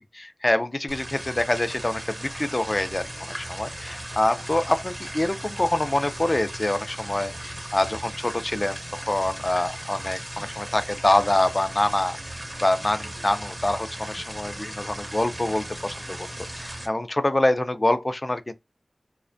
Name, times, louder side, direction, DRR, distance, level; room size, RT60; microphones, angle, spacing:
voice 1, 0.1-12.2 12.6-16.3 16.6-18.5, left 1 dB, 35° left, 0.3 m, -25 dB
sound 1, 0.9-16.9, right 1 dB, 40° right, 0.7 m, -37 dB
2.4 x 2.1 x 2.5 m
wide cardioid pair, 45°, 0 cm